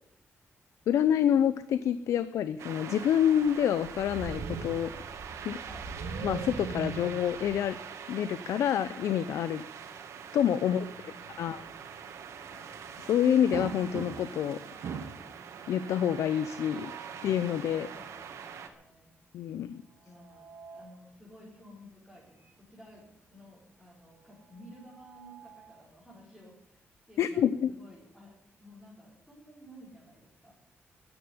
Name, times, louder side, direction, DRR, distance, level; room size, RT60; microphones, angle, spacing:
voice 1, 0.9-5.1 5.4-5.6 6.2-7.8 8.1-9.6 10.3-10.8 11.4-11.6 13.1-14.6 15.7-16.9 17.2-17.9 19.3-19.8 27.2-27.7, left 9 dB, 85° left, 13 dB, 0.7 m, -27 dB
sound 1, 2.6-18.7, right 6 dB, 80° right, 2.1 m, -42 dB
voice 2, 5.6-5.9 10.6-11.6 12.4-12.8 17.9-19.1 20.0-28.3 28.6-30.5, equal, 5° left, -6 dB, 5.2 m, -54 dB
sound 2, 13.5-14.5 14.8-15.3 16.5-17.3 19.9-21.0 22.4-22.6 22.9-23.0 24.6-25.8, right 6 dB, 55° right, 1.6 m, -43 dB
14.0 x 10.0 x 9.6 m, 0.74 s
wide cardioid pair, 170°, 5 cm